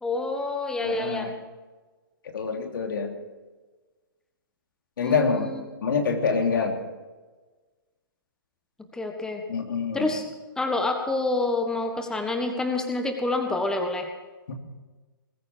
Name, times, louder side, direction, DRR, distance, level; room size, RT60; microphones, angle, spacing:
voice 1, 0.0-1.3 5.0-5.6 8.9-9.4 9.9-10.2 10.6-14.1, left 2 dB, 5° left, 4 dB, 1.5 m, -27 dB
voice 2, 0.8-1.3 2.3-3.1 5.0-5.5 5.8-6.8 9.5-10.1 14.5-14.6, left 5 dB, 65° left, 3 dB, 3.3 m, -26 dB
20.5 x 14.5 x 4.7 m, 1.3 s
hypercardioid pair, 125°, 12 cm